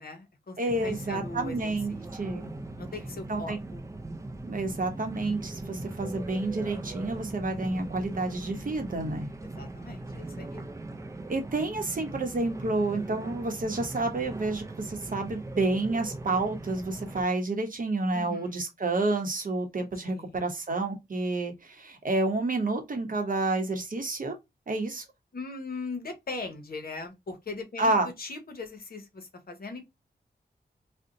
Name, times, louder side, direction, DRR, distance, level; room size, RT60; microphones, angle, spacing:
voice 1, 0.0-2.3 2.8-3.8 9.4-10.6 18.1-18.6 20.0-20.4 25.3-29.8, left 3 dB, 55° left, 0.8 m, -40 dB
voice 2, 0.6-2.5 3.3-3.6 4.5-9.3 11.3-24.3 24.7-25.0 27.8-28.1, right 2 dB, 50° right, 0.8 m, -29 dB
sound 1, 0.7-17.2, right 2 dB, 15° right, 0.4 m, -40 dB
2.6 x 2.1 x 3.8 m
wide cardioid pair, 90°, 18 cm